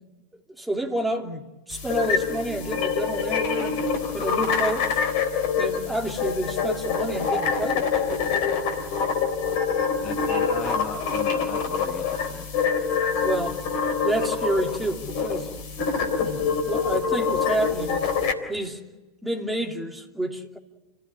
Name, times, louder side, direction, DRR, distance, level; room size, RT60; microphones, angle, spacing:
voice 1, 0.6-3.8 4.1-5.0 5.6-7.9 13.2-13.6 14.0-15.5 16.2-18.1 18.5-18.8 19.2-20.6, right 1 dB, 5° right, 3.0 m, -29 dB
sound 1, 1.7-18.3, left 5 dB, 45° left, 3.7 m, -25 dB
voice 2, 10.0-12.5, left 7 dB, 25° left, 1.1 m, -38 dB
30.0 x 16.5 x 10.0 m
figure-of-eight pair, 90°, 0 cm